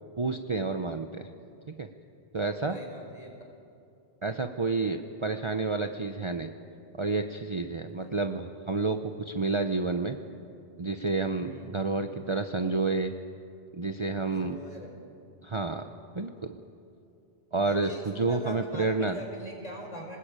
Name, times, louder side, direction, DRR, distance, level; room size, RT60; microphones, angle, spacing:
voice 1, 0.2-1.3 1.7-1.9 2.3-2.8 4.2-6.5 7.0-10.2 10.8-13.1 13.7-14.6 15.4-16.3 17.5-19.2, right 3 dB, 30° right, 6 dB, 0.8 m, -30 dB
voice 2, 2.7-3.3 8.0-8.1 11.4-11.7 14.4-14.9 17.6-20.2, equal, 35° left, 1 dB, 4.7 m, -41 dB
26.0 x 20.0 x 8.9 m, 2.5 s
omnidirectional pair, 1.2 m